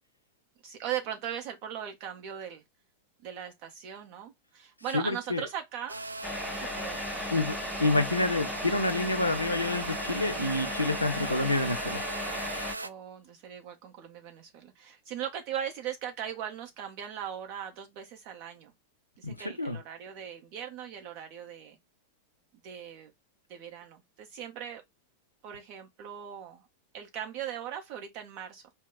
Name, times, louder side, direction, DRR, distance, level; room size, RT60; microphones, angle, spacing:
voice 1, 0.6-2.6 3.2-6.0 6.6-7.5 12.8-18.7 19.2-21.8 22.6-23.1 23.5-24.8 25.4-26.7 26.9-28.6, right 9 dB, 45° right, 1.3 m, -39 dB
voice 2, 4.9-5.4 7.3-12.0 19.2-19.8, left 2 dB, 85° left, 0.7 m, -28 dB
sound 1, 5.9-12.9, right 2 dB, 80° right, 0.3 m, -38 dB
sound 2, 6.2-12.8, left 2 dB, 5° left, 0.3 m, -37 dB
4.4 x 2.4 x 3.8 m
figure-of-eight pair, 90°, 0 cm